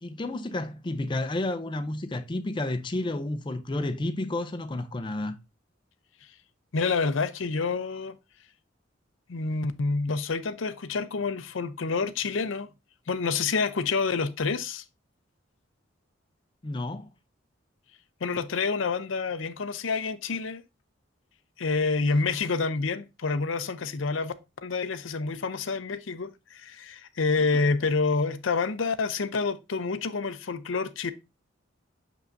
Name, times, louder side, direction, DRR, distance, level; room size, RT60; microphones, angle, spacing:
voice 1, 0.0-5.3 16.6-17.1, left 2 dB, 25° left, 0.5 m, -31 dB
voice 2, 6.7-8.1 9.3-12.7 13.1-14.8 18.2-20.6 21.6-24.3 24.6-31.1, left 4 dB, 80° left, 0.6 m, -28 dB
6.3 x 5.7 x 2.6 m
head